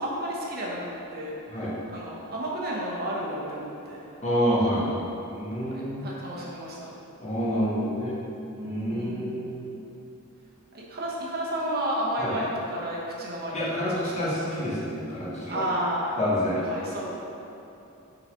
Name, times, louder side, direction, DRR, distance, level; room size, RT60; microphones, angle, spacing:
voice 1, 0.0-4.2 5.7-6.9 8.6-9.4 10.7-14.5 15.5-16.2 16.5-17.1, right 1 dB, 45° right, -4 dB, 1.0 m, -32 dB
voice 2, 4.2-5.0 5.3-6.1 7.2-8.2 8.6-9.7 12.2-12.3 13.5-15.6 16.2-16.6, equal, 30° left, -7 dB, 1.4 m, -28 dB
5.5 x 4.0 x 5.7 m, 2.9 s
head